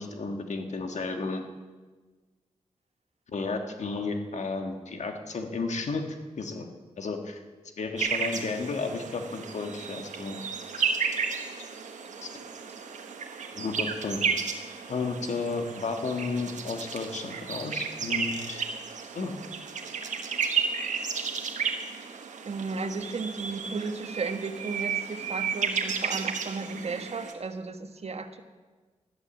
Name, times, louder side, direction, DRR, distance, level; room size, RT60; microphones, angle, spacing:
voice 1, 0.0-1.4 3.3-6.0 6.4-6.7 7.0-7.4 7.8-10.4 12.2-12.3 13.5-14.2 14.9-18.6 19.1-19.3, left 4 dB, 70° left, 5 dB, 1.6 m, -32 dB
sound 1, 8.0-27.3, right 6 dB, 85° right, 1.4 m, -33 dB
voice 2, 22.4-28.4, right 4 dB, 55° right, 7 dB, 1.4 m, -34 dB
13.5 x 11.5 x 7.2 m, 1.3 s
cardioid pair, 60°, 12 cm